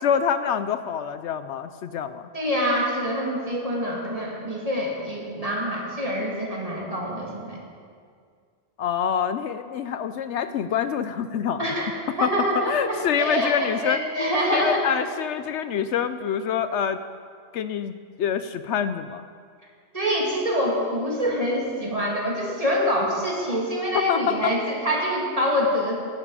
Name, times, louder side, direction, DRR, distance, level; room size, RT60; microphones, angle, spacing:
voice 1, 0.0-2.3 8.8-11.6 12.2-14.0 14.5-17.0 17.5-17.9 18.2-19.2 24.1-24.5, left 8 dB, 75° left, 11 dB, 0.9 m, -26 dB
voice 2, 2.3-7.6 11.6-14.9 19.9-26.0, equal, 30° right, -3 dB, 2.5 m, -25 dB
16.5 x 11.0 x 4.9 m, 2.1 s
omnidirectional pair, 1.2 m